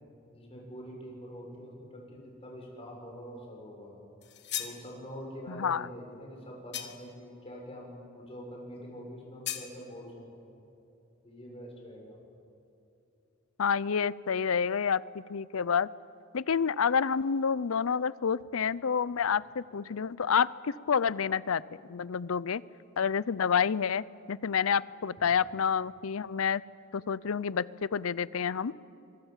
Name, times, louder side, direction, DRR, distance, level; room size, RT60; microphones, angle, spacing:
voice 1, 0.3-4.0 4.6-10.5 11.2-12.2, equal, 30° left, -1 dB, 6.9 m, -45 dB
sound 1, 4.2-4.8 6.7-7.2 9.4-9.7, left 10 dB, 55° left, 1.7 m, -37 dB
voice 2, 5.5-5.9 13.6-15.9 16.3-21.6 21.9-22.6 23.0-26.6 26.9-28.7, left 6 dB, 90° left, 20 dB, 0.6 m, -29 dB
25.5 x 23.0 x 7.4 m, 2.7 s
head